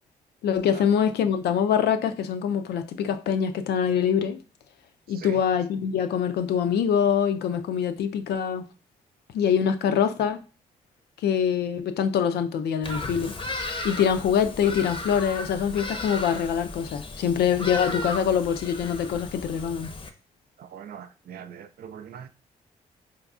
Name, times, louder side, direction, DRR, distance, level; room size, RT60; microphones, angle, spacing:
voice 1, 0.4-4.4 5.1-8.7 9.3-10.4 11.2-13.3 13.8-19.9, left 8 dB, 65° left, 0.4 m, -24 dB
voice 2, 5.1-5.4 20.6-22.3, right 8 dB, 55° right, 0.4 m, -42 dB
Bird vocalization bird call bird song, 12.8-20.1, left 2 dB, 30° left, 0.7 m, -35 dB
4.5 x 2.4 x 2.5 m
hypercardioid pair, 45°, 18 cm